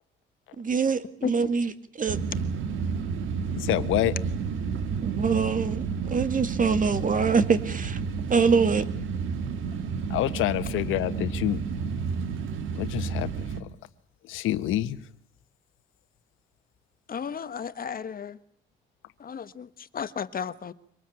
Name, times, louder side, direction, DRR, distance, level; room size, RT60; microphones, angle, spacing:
voice 1, 0.6-1.7 2.0-2.2 5.0-8.0 8.3-8.8, right 5 dB, 40° right, 12 dB, 2.2 m, -24 dB
sound 1, 2.1-13.6, right 6 dB, 80° right, 2.4 m, -31 dB
voice 2, 3.5-4.1 10.1-11.6 12.7-13.3 13.6-13.7 14.3-15.0, left 14 dB, 90° left, 12 dB, 1.4 m, -27 dB
voice 3, 17.1-18.4 19.2-19.7 19.9-20.7, left 7 dB, 45° left, 13 dB, 1.4 m, -33 dB
25.0 x 19.5 x 8.9 m, 0.63 s
cardioid pair, 90°, 20 cm